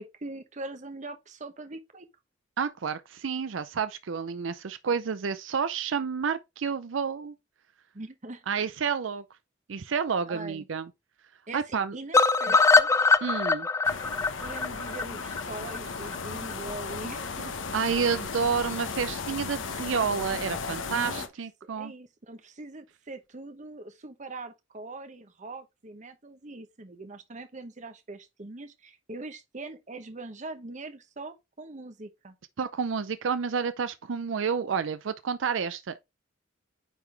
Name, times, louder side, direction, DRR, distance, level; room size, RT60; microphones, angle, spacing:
voice 1, 0.0-2.1 7.9-8.4 10.3-10.7 11.5-13.1 14.4-17.5 20.9-21.3 21.6-32.4, right 2 dB, 40° right, 0.9 m, -42 dB
voice 2, 2.6-7.3 8.5-9.2 9.7-10.9 11.5-12.0 13.2-13.7 17.7-21.9 32.6-36.0, right 6 dB, 80° right, 0.5 m, -30 dB
sound 1, 12.1-16.2 16.5-16.6 16.9-17.0 17.3-17.4, left 4 dB, 15° left, 0.3 m, -23 dB
sound 2, 13.8-21.3, left 5 dB, 80° left, 0.9 m, -35 dB
9.2 x 3.8 x 3.3 m
head